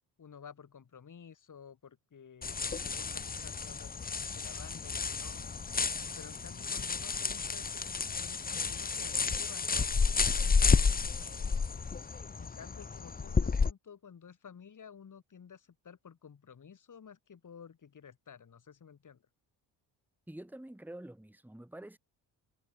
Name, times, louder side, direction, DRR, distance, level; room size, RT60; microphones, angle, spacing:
voice 1, 0.2-5.5 6.2-11.6 12.4-19.2, left 7 dB, 45° left, 3.3 m, -53 dB
sound 1, 2.4-13.7, left 5 dB, 20° left, 0.8 m, -31 dB
voice 2, 20.3-22.0, right 1 dB, 5° right, 2.1 m, -47 dB
cardioid pair, 80°, 43 cm